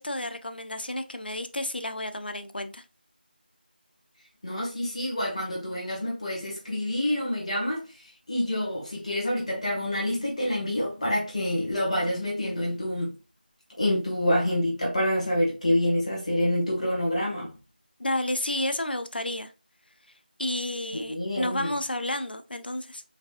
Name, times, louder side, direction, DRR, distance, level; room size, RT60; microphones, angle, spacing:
voice 1, 0.0-2.8 18.0-19.5 20.4-23.0, left 1 dB, 70° left, 0.6 m, -31 dB
voice 2, 4.4-13.1 13.8-17.5 20.9-21.7, left 1 dB, 40° left, 1.7 m, -27 dB
5.0 x 3.4 x 2.5 m
figure-of-eight pair, 170°, 5 cm